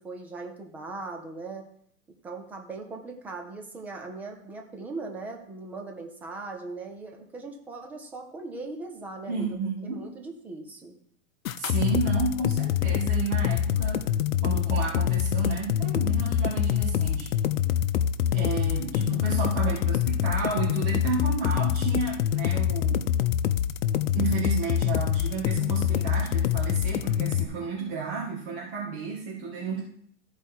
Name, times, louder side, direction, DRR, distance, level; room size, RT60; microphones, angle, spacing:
voice 1, 0.0-1.7 2.2-9.6 9.9-11.0, right 3 dB, 5° right, 2 dB, 0.3 m, -39 dB
voice 2, 9.3-10.1 11.6-14.1 14.4-17.3 18.3-23.1 24.1-29.8, right 4 dB, 40° right, -4 dB, 2.0 m, -32 dB
sound 1, 11.4-27.4, left 10 dB, 75° left, 0.7 m, -25 dB
13.5 x 4.7 x 4.5 m, 0.66 s
hypercardioid pair, 135°, 41 cm